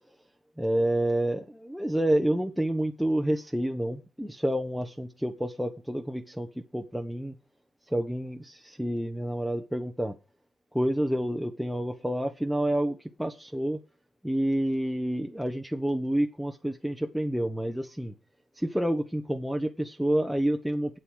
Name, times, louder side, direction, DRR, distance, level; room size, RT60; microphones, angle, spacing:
voice 1, 0.6-7.3 7.9-10.2 10.7-13.8 14.2-18.1 18.5-21.0, right 1 dB, ahead, 1.0 m, -29 dB
8.1 x 7.7 x 6.3 m
cardioid pair, 95°, 0 cm